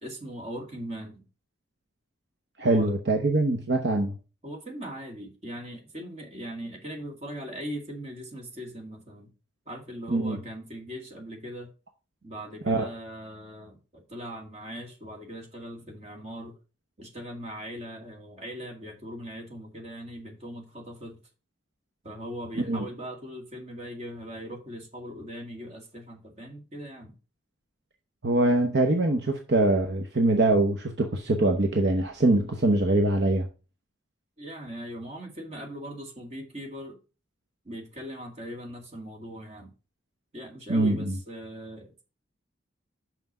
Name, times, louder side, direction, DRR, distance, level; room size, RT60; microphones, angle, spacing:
voice 1, 0.0-1.2 2.6-2.9 4.4-9.3 9.7-11.7 12.2-16.6 17.0-21.2 22.0-27.1 34.4-37.0 37.6-39.7 40.3-42.0, equal, 35° right, 2.0 m, -40 dB
voice 2, 2.6-4.2 10.1-10.4 12.7-12.9 22.7-22.8 28.2-33.5 40.7-41.2, right 2 dB, 55° right, 0.9 m, -23 dB
6.0 x 5.9 x 5.4 m
head